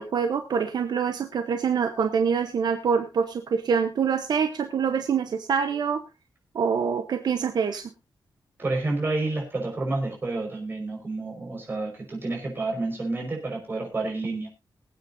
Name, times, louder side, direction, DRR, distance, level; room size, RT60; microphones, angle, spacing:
voice 1, 0.0-6.0 6.5-7.9, right 6 dB, 60° right, 7 dB, 1.0 m, -25 dB
voice 2, 8.6-14.5, right 2 dB, 25° right, 0 dB, 5.4 m, -29 dB
22.5 x 9.0 x 2.7 m, 0.28 s
wide cardioid pair, 175°, 8 cm